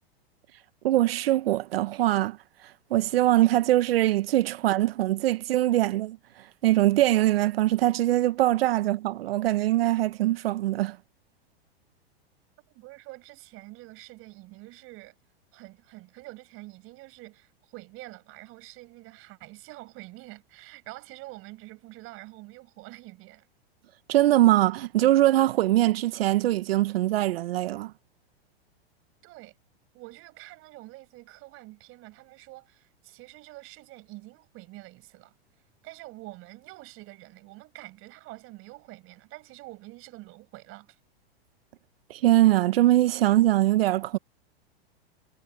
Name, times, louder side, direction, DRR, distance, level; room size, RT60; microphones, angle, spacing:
voice 1, 0.8-2.4 2.6-11.0 24.1-27.9 42.1-44.2, right 15 dB, 70° right, 1.2 m, -22 dB
voice 2, 12.7-15.1 15.5-23.5 29.2-29.6 29.9-35.4 35.8-41.0, right 21 dB, 45° right, 6.3 m, -46 dB
hypercardioid pair, 115°, 31 cm